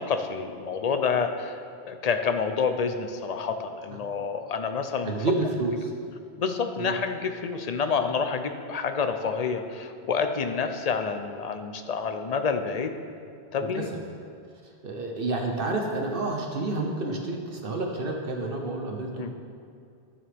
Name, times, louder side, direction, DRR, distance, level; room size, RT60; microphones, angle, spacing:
voice 1, 0.0-5.2 6.4-12.9 13.5-13.9 19.2-19.3, left 5 dB, 45° left, 7 dB, 0.6 m, -28 dB
voice 2, 5.0-5.9 6.8-6.9 13.6-13.9 14.6-19.2, right 2 dB, 60° right, 1 dB, 1.0 m, -29 dB
12.5 x 7.3 x 3.5 m, 2.4 s
omnidirectional pair, 1.1 m